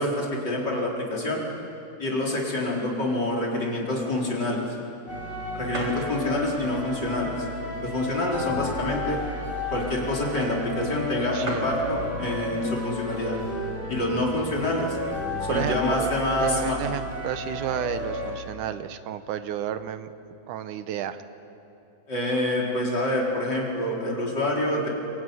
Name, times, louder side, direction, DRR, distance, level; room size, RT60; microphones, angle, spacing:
voice 1, 0.0-1.4 2.0-4.6 5.5-7.3 7.8-9.2 9.7-13.4 13.9-15.0 15.5-16.8 22.1-24.9, left 1 dB, 35° left, -3 dB, 5.0 m, -27 dB
sound 1, 4.7-4.8 5.2-5.3 5.7-6.1 6.7-6.8 7.6-8.8 9.2-9.3 9.4-9.7 10.5-10.6 10.8-10.9 11.1-11.2 11.4-11.8 12.7-13.1 13.6-13.7 13.9-14.7, right 2 dB, 55° right, 5.1 m, -36 dB
sound 2, 5.1-18.3, left 2 dB, 15° left, 7.7 m, -33 dB
voice 2, 11.3-11.7 15.5-16.1 16.4-20.1 20.5-21.2, right 10 dB, 85° right, 11 dB, 2.4 m, -31 dB
23.5 x 23.5 x 9.7 m, 2.8 s
omnidirectional pair, 3.5 m